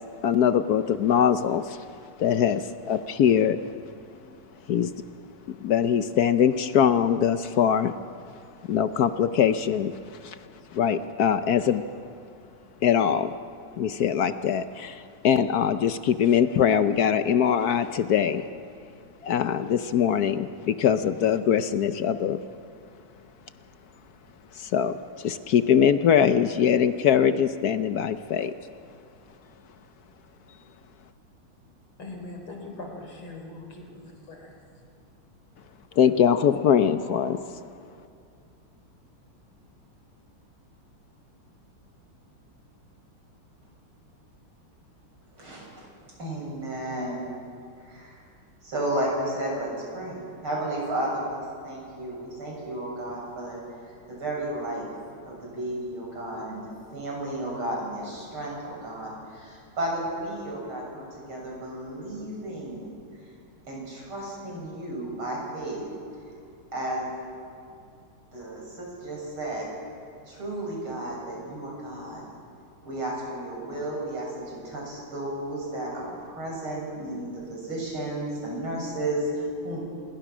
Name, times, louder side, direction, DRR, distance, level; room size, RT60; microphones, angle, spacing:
voice 1, 0.2-1.8 2.2-3.6 4.7-4.9 5.5-7.9 8.7-10.4 10.7-11.8 12.8-13.3 13.8-18.5 19.2-22.4 24.5-28.5 36.0-37.4, left 8 dB, 65° left, 11 dB, 1.0 m, -22 dB
voice 2, 32.0-34.5, left 2 dB, 85° left, 2 dB, 4.6 m, -41 dB
voice 3, 45.3-45.8 46.2-47.4 47.8-48.2 48.6-51.4 51.6-53.6 54.1-54.9 55.3-62.9 63.7-65.8 66.7-67.1 68.3-69.7 70.3-72.3 72.8-79.9, right 1 dB, 80° right, -3 dB, 7.9 m, -33 dB
26.5 x 22.0 x 6.2 m, 2.4 s
omnidirectional pair, 2.3 m